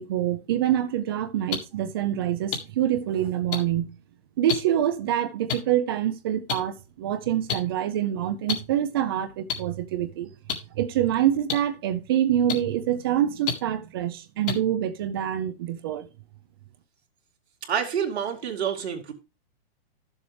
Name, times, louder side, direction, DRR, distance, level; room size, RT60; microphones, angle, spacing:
voice 1, 0.0-3.9 4.4-10.3 10.7-16.1, right 11 dB, 25° right, 0.5 m, -26 dB
sound 1, 1.5-1.6 2.5-2.6 3.5-3.6 4.5-4.6 5.5-5.6 6.5-6.6 7.5-7.6 8.5-8.6 9.5-9.6 10.5-10.6 11.5-11.6 12.5-12.6 13.5-13.6 14.5-14.6, left 7 dB, 55° left, 2.0 m, -26 dB
voice 2, 17.6-19.1, right 8 dB, 90° right, 2.4 m, -28 dB
12.0 x 7.1 x 3.2 m
hypercardioid pair, 170°, 31 cm